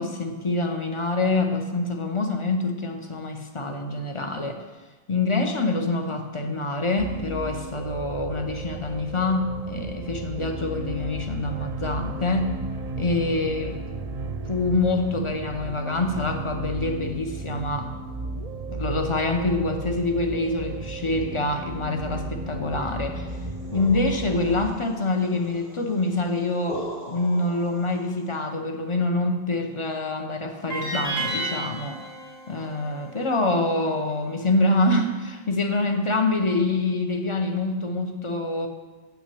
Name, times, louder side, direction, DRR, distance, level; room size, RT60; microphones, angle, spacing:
voice 1, 0.0-4.6 5.1-12.6 13.0-13.8 14.5-17.9 18.7-23.3 23.7-32.0 32.5-38.7, left 2 dB, 35° left, 4 dB, 0.8 m, -26 dB
sound 1, 7.0-24.7, right 2 dB, 45° right, 0.6 m, -34 dB
sound 2, 23.3-28.3, equal, 55° left, 1.8 m, -41 dB
sound 3, 30.7-33.8, right 2 dB, 85° left, 2.2 m, -32 dB
7.6 x 6.1 x 6.9 m, 1.3 s
omnidirectional pair, 1.0 m